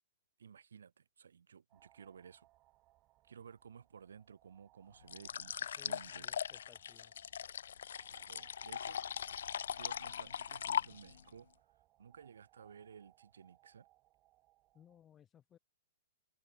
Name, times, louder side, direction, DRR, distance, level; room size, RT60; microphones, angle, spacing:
voice 1, 0.4-2.5 3.2-6.3 8.1-9.0 9.8-11.5 12.0-13.9, right 7 dB, 90° right, 2.2 m, -56 dB
sound 1, 1.7-15.0, right 17 dB, 30° right, 4.7 m, -69 dB
sound 2, 5.1-11.3, left 8 dB, 75° left, 1.1 m, -40 dB
voice 2, 5.8-7.1 14.7-15.6, left 9 dB, 20° left, 2.8 m, -62 dB
hypercardioid pair, 145°, 0 cm